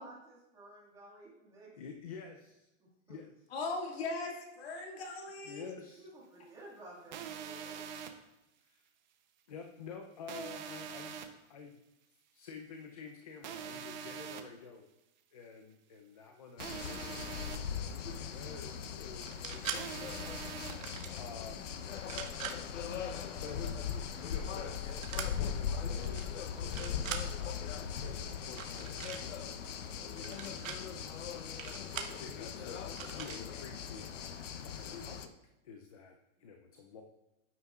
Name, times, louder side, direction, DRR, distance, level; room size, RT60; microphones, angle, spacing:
voice 1, 0.0-1.7 6.0-7.8, right 1 dB, 10° right, -5 dB, 1.9 m, -53 dB
voice 2, 1.8-2.7 3.1-3.3 5.4-6.1 8.6-8.8 9.5-11.2 11.5-11.8 12.3-14.9 15.3-20.1 21.1-21.7 23.0-23.6 24.1-32.8 33.2-34.4 34.6-35.3 35.6-36.1 36.4-37.0, left 5 dB, 30° left, 4 dB, 0.5 m, -50 dB
voice 3, 3.5-5.6, left 3 dB, 50° left, 0 dB, 2.1 m, -39 dB
sound 1, 7.1-8.1 10.3-11.3 13.4-14.4 16.6-17.6 19.7-20.7, right 7 dB, 35° right, 0.7 m, -43 dB
sound 2, 16.6-35.3, left 7 dB, 70° left, 0.9 m, -40 dB
sound 3, 19.2-19.8 20.6-21.2 22.0-22.6 25.0-25.3 26.0-26.2 26.6-27.2 28.5-29.2 30.2-30.8 31.6-32.2 32.9-33.4, right 8 dB, 80° right, 1.3 m, -41 dB
13.0 x 9.5 x 2.4 m, 0.92 s
hypercardioid pair, 170°, 39 cm